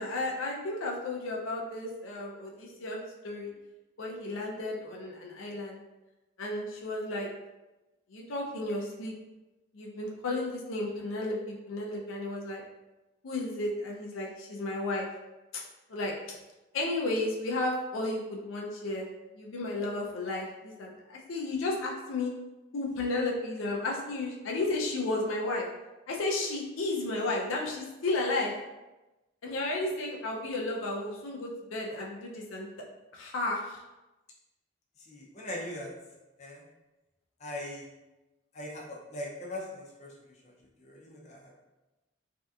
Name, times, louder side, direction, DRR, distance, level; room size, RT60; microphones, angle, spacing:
voice 1, 0.0-3.5 4.0-5.8 6.4-7.3 8.1-9.1 9.7-12.6 13.2-15.1 15.5-15.6 15.9-16.1 16.7-19.1 19.3-22.3 22.7-25.7 26.1-28.5 29.4-32.8 33.1-33.8, left 2 dB, 80° left, -2 dB, 0.5 m, -33 dB
voice 2, 35.1-35.9 36.4-36.6 37.4-37.9 38.5-40.1 40.8-41.5, left 1 dB, 35° left, -3 dB, 0.5 m, -40 dB
3.3 x 2.7 x 2.4 m, 1.1 s
head